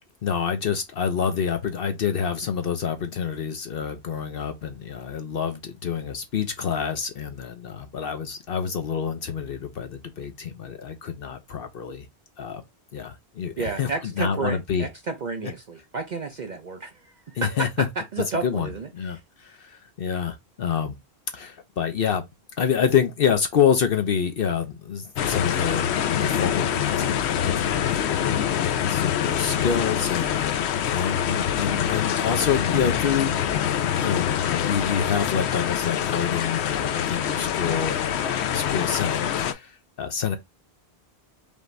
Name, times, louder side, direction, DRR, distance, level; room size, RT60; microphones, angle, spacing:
voice 1, 0.2-12.1 12.4-12.6 12.9-14.9 15.4-15.5 17.3-17.9 18.4-20.9 21.3-22.2 22.6-28.4 28.9-30.6 30.9-40.4, left 7 dB, 65° left, 0.9 m, -27 dB
voice 2, 13.6-17.7 18.1-18.9, right 4 dB, 50° right, 0.7 m, -31 dB
sound 1, 25.2-39.5, left 9 dB, 90° left, 0.9 m, -25 dB
5.2 x 2.5 x 3.2 m
omnidirectional pair, 1.1 m